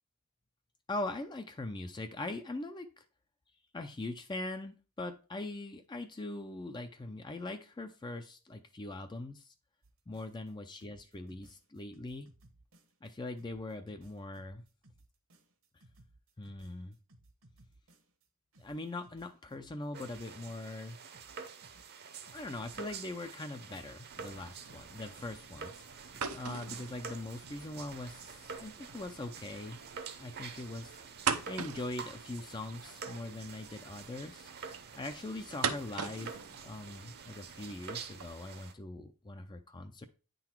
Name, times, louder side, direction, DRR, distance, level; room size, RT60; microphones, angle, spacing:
voice 1, 0.9-3.0 3.7-9.5 10.1-12.3 13.0-14.6 16.4-17.0 18.6-21.0 22.3-29.8 30.2-31.0 31.5-34.5 35.0-36.3 36.6-40.0, left 2 dB, 20° left, 7 dB, 0.4 m, -41 dB
sound 1, 9.8-10.5 10.8-13.1 13.4-18.3 18.5-20.8 21.1-23.4 23.7-28.6 28.9-29.7, right 1 dB, 60° right, 1.1 m, -62 dB
sound 2, 19.9-38.7, right 6 dB, 45° right, 0.8 m, -48 dB
sound 3, 24.1-38.3, right 6 dB, 85° right, 0.8 m, -42 dB
9.4 x 3.9 x 4.4 m, 0.35 s
head